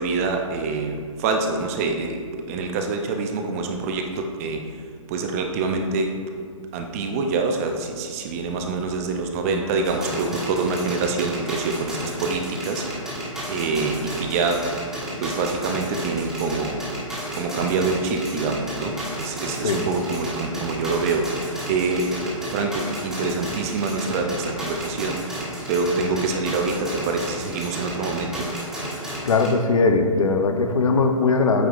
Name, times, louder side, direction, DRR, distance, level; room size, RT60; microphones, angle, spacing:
voice 1, 0.0-2.2 2.5-4.6 5.1-6.1 6.4-6.5 6.7-12.8 13.5-14.7 15.2-16.8 17.3-22.1 22.4-25.3 25.7-28.5, right 4 dB, 25° right, 4 dB, 0.5 m, -25 dB
sound 1, 9.8-29.5, equal, ahead, 1.4 m, -32 dB
voice 2, 29.3-31.7, left 4 dB, 80° left, 5 dB, 0.7 m, -19 dB
8.5 x 4.5 x 2.5 m, 2.1 s
hypercardioid pair, 145°, 17 cm